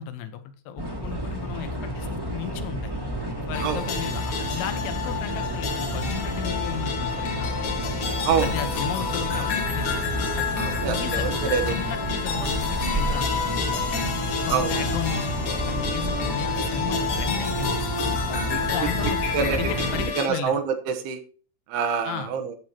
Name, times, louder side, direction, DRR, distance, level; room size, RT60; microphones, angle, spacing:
voice 1, 0.0-2.9 3.4-7.7 8.4-9.9 10.4-10.5 10.9-11.3 11.7-13.8 14.5-17.8 18.2-18.4 18.7-19.2 19.5-20.6 22.0-22.3, left 9 dB, 85° left, 9 dB, 3.1 m, -35 dB
sound 1, 0.8-20.1, equal, 10° right, 1.0 m, -30 dB
sound 2, 3.5-20.3, left 5 dB, 65° left, 1.4 m, -29 dB
voice 2, 10.6-11.8 14.5-14.7 18.5-18.6 19.3-19.7 20.2-21.2 21.7-22.6, right 6 dB, 75° right, 6 dB, 2.9 m, -26 dB
11.0 x 7.6 x 2.9 m, 0.41 s
omnidirectional pair, 4.8 m